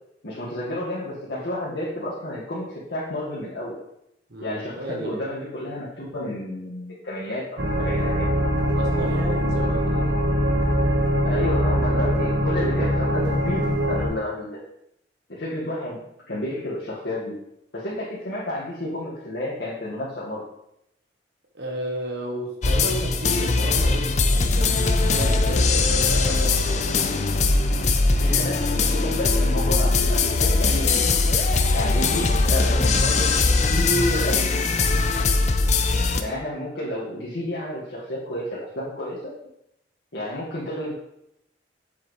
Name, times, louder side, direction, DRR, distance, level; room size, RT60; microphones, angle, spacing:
voice 1, 0.2-3.8 4.4-8.3 11.2-14.6 15.3-16.0 16.3-17.3 17.7-20.4 28.2-31.0 31.7-34.5 36.2-39.3 40.1-40.9, left 1 dB, 75° left, -8 dB, 1.8 m, -31 dB
voice 2, 4.3-5.2 8.7-10.1 21.5-26.9, right 1 dB, 60° right, 1 dB, 1.1 m, -33 dB
sound 1, 7.6-14.1, equal, 80° right, 1.4 m, -22 dB
sound 2, 22.6-36.2, left 3 dB, 40° left, 0.6 m, -21 dB
7.7 x 7.1 x 3.2 m, 0.80 s
head